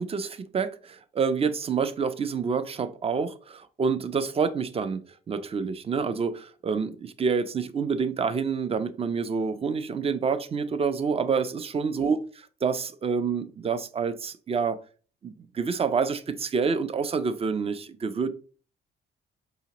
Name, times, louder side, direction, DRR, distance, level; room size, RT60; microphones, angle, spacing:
voice 1, 0.0-12.2 12.6-14.8 15.2-18.3, right 5 dB, 30° right, 0.5 m, -28 dB
4.9 x 2.8 x 2.9 m
cardioid pair, 90°, 20 cm